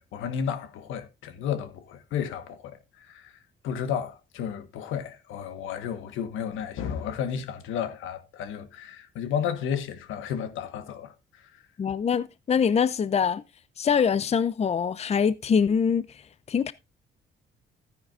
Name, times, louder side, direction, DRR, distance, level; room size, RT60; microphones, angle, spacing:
voice 1, 0.1-2.8 3.6-11.1, left 8 dB, 90° left, 1.6 m, -32 dB
voice 2, 11.8-13.4 13.8-16.1 16.5-16.7, left 6 dB, 35° left, 0.6 m, -24 dB
13.0 x 9.8 x 2.6 m
cardioid pair, 90°, 20 cm